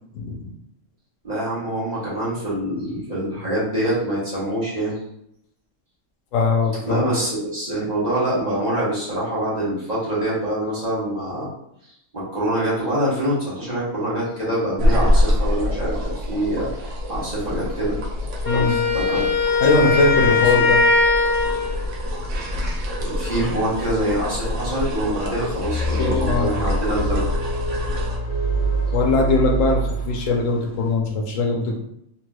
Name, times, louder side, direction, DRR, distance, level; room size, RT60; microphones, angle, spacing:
voice 1, 1.2-4.9 6.9-11.5 12.1-18.0 18.5-19.3 20.2-20.6 23.0-27.3, right 1 dB, 35° right, -9 dB, 1.3 m, -25 dB
voice 2, 6.3-7.0 18.5-18.8 19.6-20.8 26.0-26.6 28.9-31.8, left 3 dB, 80° left, 1 dB, 1.0 m, -21 dB
sound 1, 14.8-28.2, left 1 dB, 70° right, 1.0 m, -25 dB
Wind instrument woodwind instrument, 18.4-21.8, left 3 dB, 50° left, 1.2 m, -19 dB
sound 2, 25.6-30.6, right 2 dB, 25° left, 0.9 m, -26 dB
3.1 x 3.1 x 2.2 m, 0.76 s
omnidirectional pair, 1.3 m